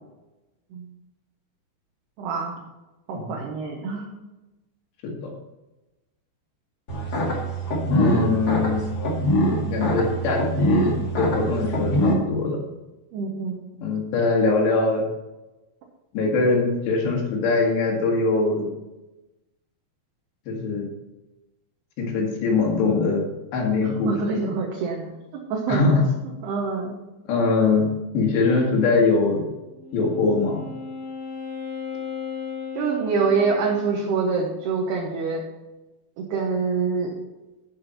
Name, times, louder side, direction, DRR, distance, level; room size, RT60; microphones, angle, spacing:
voice 1, 2.2-2.6 3.1-4.0 13.1-13.6 23.8-25.1 25.5-25.9 26.4-27.0 32.8-35.4 36.2-37.1, right 4 dB, 70° right, -1 dB, 3.0 m, -25 dB
sound 1, 6.9-12.1, equal, 50° left, 1.1 m, -23 dB
voice 2, 7.9-8.9 9.7-12.6 13.8-15.0 16.1-18.7 20.5-20.9 22.0-23.2 23.5-24.5 25.7-26.0 27.3-27.9 28.1-29.4 29.9-30.6, left 3 dB, 70° left, -1 dB, 4.1 m, -22 dB
Wind instrument woodwind instrument, 29.6-34.0, left 5 dB, 35° left, 3.9 m, -35 dB
13.5 x 6.2 x 4.2 m, 1.0 s
omnidirectional pair, 5.3 m